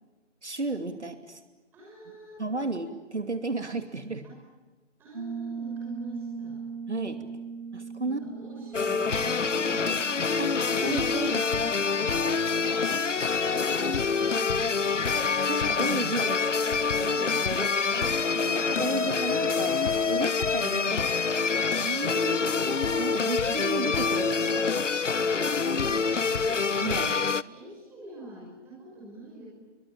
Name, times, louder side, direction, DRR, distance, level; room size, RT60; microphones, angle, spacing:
voice 1, 0.4-1.4 2.4-4.3 6.9-7.2 7.7-8.2 10.4-11.5 15.5-16.5 17.0-17.2 17.5-17.7 18.3-21.1 21.8-24.9 26.8-27.2, right 2 dB, 70° right, 7 dB, 2.8 m, -33 dB
voice 2, 1.7-2.7 4.2-4.4 5.0-6.6 8.0-9.9 11.2-12.3 12.9-15.1 16.9-18.6 25.1-26.6 27.4-29.5, right 1 dB, 5° right, -4 dB, 6.1 m, -46 dB
Piano, 5.1-13.7, right 5 dB, 45° right, 3.8 m, -40 dB
sound 1, 8.7-27.4, left 5 dB, 80° left, 0.9 m, -26 dB
28.5 x 23.5 x 8.7 m, 1.2 s
figure-of-eight pair, 165°, 36 cm